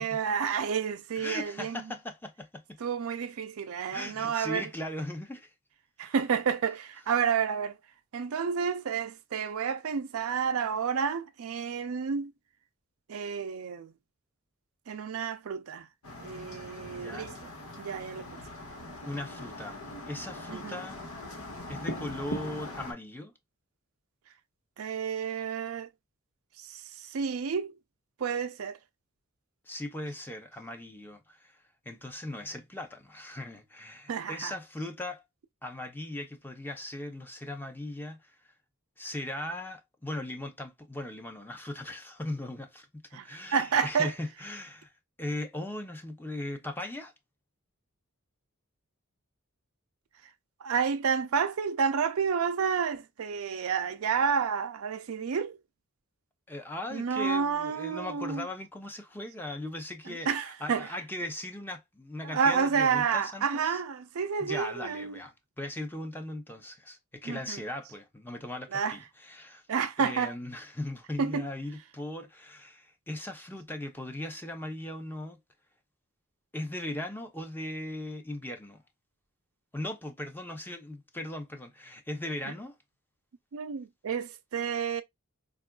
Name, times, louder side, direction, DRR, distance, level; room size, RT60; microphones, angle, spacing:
voice 1, 0.0-1.8 2.8-4.7 6.0-7.8 8.1-12.3 13.1-13.9 14.9-15.9 16.2-17.3 17.8-18.3 20.5-20.8 24.8-25.9 26.6-27.7 28.2-28.8 34.1-34.5 43.1-44.1 50.6-55.6 56.9-58.5 60.1-60.9 62.2-65.2 67.2-67.6 68.7-69.0 69.7-70.3 71.2-71.5 82.5-82.6 83.5-85.0, right 6 dB, 70° right, 0.4 m, -30 dB
voice 2, 1.2-2.8 3.9-5.5 6.0-6.1 17.0-17.4 19.0-19.8 20.1-21.0 21.7-23.3 29.7-31.6 31.9-35.2 35.6-38.3 39.0-42.9 43.1-44.9 45.2-47.1 56.5-63.8 64.4-69.6 70.0-75.4 76.5-78.8 79.7-82.7, left 1 dB, 10° left, 0.6 m, -38 dB
sound 1, 16.0-22.9, left 1 dB, 80° left, 1.2 m, -41 dB
4.4 x 2.4 x 2.2 m
head